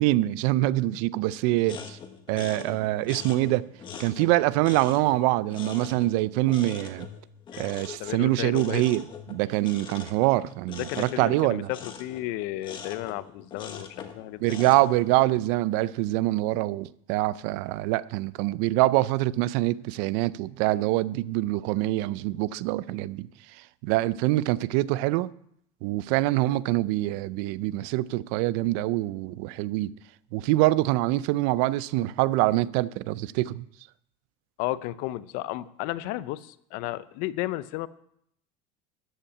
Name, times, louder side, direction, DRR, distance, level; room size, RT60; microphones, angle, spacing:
voice 1, 0.0-2.0 2.3-3.7 4.0-7.1 7.6-9.0 9.3-11.7 14.4-23.3 23.6-25.3 25.8-29.9 30.3-33.6, right 17 dB, 65° right, 0.4 m, -25 dB
sound 1, 1.6-15.2, left 6 dB, 30° left, 1.3 m, -43 dB
voice 2, 8.0-8.8 10.8-14.4 14.7-14.8 34.6-37.9, left 16 dB, 60° left, 0.6 m, -33 dB
13.5 x 5.6 x 8.5 m
cardioid pair, 145°, 17 cm